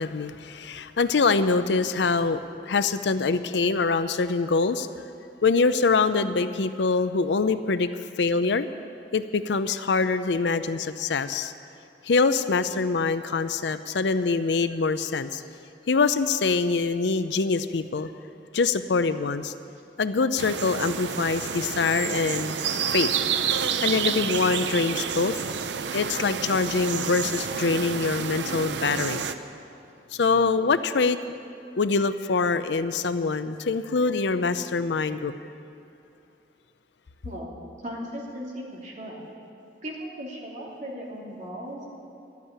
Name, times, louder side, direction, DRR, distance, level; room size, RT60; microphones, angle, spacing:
voice 1, 0.0-4.9 5.4-7.9 8.2-8.7 9.1-11.5 12.0-15.4 15.9-18.1 18.5-19.5 20.0-22.5 22.9-23.1 23.8-25.4 25.9-29.2 30.1-31.2 31.8-35.3, left 4 dB, 80° left, 12 dB, 0.6 m, -24 dB
sound 1, 20.4-29.3, right 7 dB, 80° right, 0.6 m, -29 dB
voice 2, 37.2-37.6 37.8-39.2 39.8-41.9, equal, 45° right, -3 dB, 2.7 m, -37 dB
12.5 x 8.4 x 9.9 m, 2.8 s
head